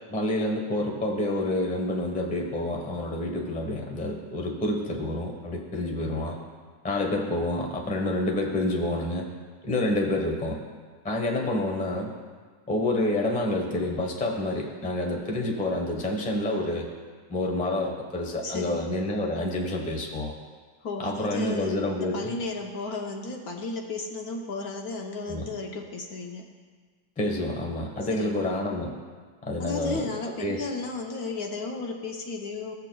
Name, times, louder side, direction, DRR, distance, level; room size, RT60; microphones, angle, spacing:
voice 1, 0.1-6.4 6.8-9.3 9.6-10.6 11.0-12.1 12.7-16.9 17.3-20.3 21.0-22.3 25.3-25.5 27.2-28.9 29.4-30.1 30.4-30.7, left 1 dB, 5° left, 1 dB, 0.7 m, -28 dB
voice 2, 18.4-18.8 20.8-26.5 28.1-28.3 29.6-32.7, left 3 dB, 65° left, 1 dB, 1.2 m, -34 dB
17.0 x 7.7 x 2.3 m, 1.6 s
omnidirectional pair, 1.9 m